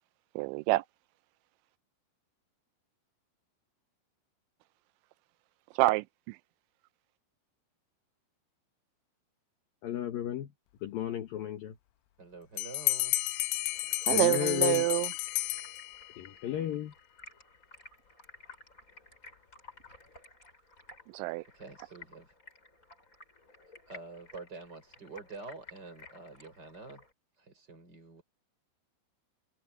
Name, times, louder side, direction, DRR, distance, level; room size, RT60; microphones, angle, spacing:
voice 1, 0.4-0.8 5.8-6.4 14.1-15.1 21.1-21.4, right 21 dB, 85° right, 2.7 m, -27 dB
voice 2, 9.8-10.5 10.8-11.7 14.1-14.8 16.2-16.9, left 11 dB, 70° left, 2.3 m, -34 dB
voice 3, 12.2-13.2 21.5-22.3 23.9-27.0 27.3-28.2, right 3 dB, 20° right, 5.5 m, -47 dB
Bell, 12.6-16.2, left 18 dB, 90° left, 2.4 m, -31 dB
Stream, 13.7-27.1, left 2 dB, 15° left, 7.0 m, -55 dB
omnidirectional pair, 5.7 m